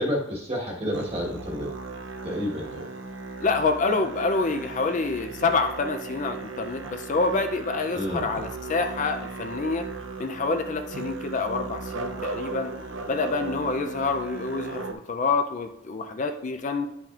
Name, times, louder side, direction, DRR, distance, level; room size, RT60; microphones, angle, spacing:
voice 1, 0.0-1.7 2.2-2.9 7.9-8.2, equal, 30° right, -1 dB, 1.3 m, -29 dB
Musical instrument, 0.9-14.9, right 4 dB, 70° right, 0.6 m, -37 dB
voice 2, 3.4-9.9 10.2-12.7 13.1-16.9, left 4 dB, 40° left, 6 dB, 0.4 m, -27 dB
10.0 x 5.7 x 2.4 m, 0.81 s
head